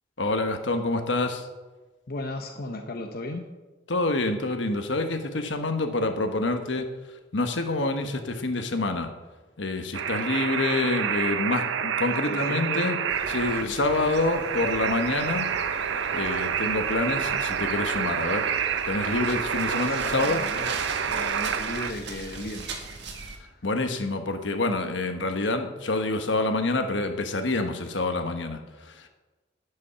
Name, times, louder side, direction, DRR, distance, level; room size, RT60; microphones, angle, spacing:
voice 1, 0.2-1.5 3.9-6.9 7.3-9.1 9.6-13.0 13.3-15.5 16.1-18.5 18.9-20.4 23.6-29.1, left 2 dB, 75° left, 6 dB, 1.2 m, -27 dB
voice 2, 2.1-3.5 12.1-12.9 13.6-13.7 19.9-22.7 23.0-23.6, left 2 dB, 50° left, 4 dB, 0.8 m, -36 dB
sound 1, 9.9-21.9, right 7 dB, 85° right, 0.6 m, -28 dB
sound 2, 13.1-23.4, right 4 dB, 65° right, 1.6 m, -41 dB
9.8 x 8.2 x 5.7 m, 1.2 s
head